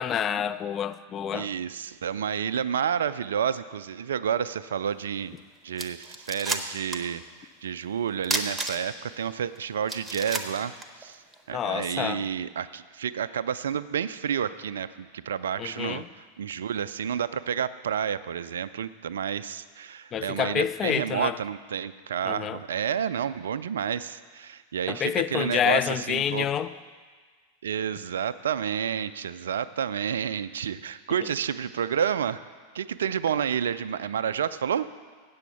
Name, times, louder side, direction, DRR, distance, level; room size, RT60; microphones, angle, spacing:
voice 1, 0.0-1.5 11.5-12.2 15.6-16.1 20.1-21.4 22.2-22.6 24.9-26.7, left 9 dB, 30° left, 13 dB, 0.3 m, -28 dB
voice 2, 1.3-5.3 5.6-7.2 7.6-11.2 11.5-26.5 27.6-32.4 32.7-34.9, right 8 dB, 65° right, 15 dB, 0.3 m, -30 dB
sound 1, 5.4-5.5 5.8-7.1 7.4-7.5 8.2-9.1 9.5-9.6 9.9-11.4, right 2 dB, 10° right, 0.8 m, -32 dB
8.3 x 7.1 x 6.9 m, 1.5 s
figure-of-eight pair, 90°, 0 cm